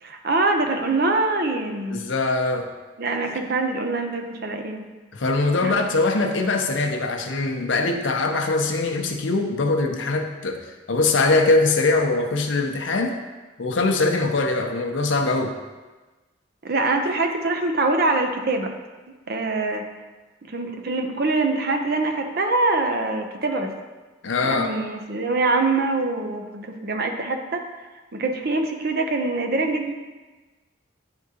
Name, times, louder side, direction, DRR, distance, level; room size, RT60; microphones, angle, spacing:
voice 1, 0.0-2.0 3.0-4.9 5.6-5.7 16.6-18.7 19.3-19.9 20.5-23.7 24.4-27.6 28.1-29.9, right 3 dB, 50° right, 4 dB, 0.6 m, -24 dB
voice 2, 1.9-2.7 5.1-10.6 10.9-13.2 13.6-15.5 24.2-24.7, left 3 dB, 75° left, 3 dB, 0.6 m, -22 dB
9.5 x 3.6 x 2.8 m, 1.2 s
head